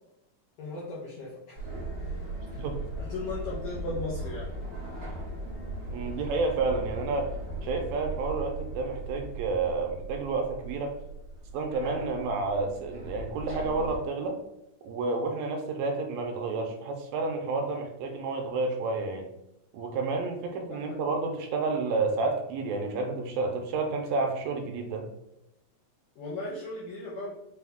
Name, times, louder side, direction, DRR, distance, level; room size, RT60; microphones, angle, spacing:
voice 1, 0.6-2.2 2.5-2.6 3.0-4.5 20.7-21.0 26.1-27.3, left 2 dB, 75° left, -6 dB, 1.4 m, -37 dB
sound 1, 1.6-14.0, right 2 dB, 55° right, 0.9 m, -38 dB
voice 2, 5.9-7.3 7.6-10.9 11.5-14.4 14.8-19.3 19.7-25.1, right 3 dB, 80° right, 4 dB, 1.8 m, -30 dB
5.0 x 2.2 x 3.4 m, 0.85 s
omnidirectional pair, 3.5 m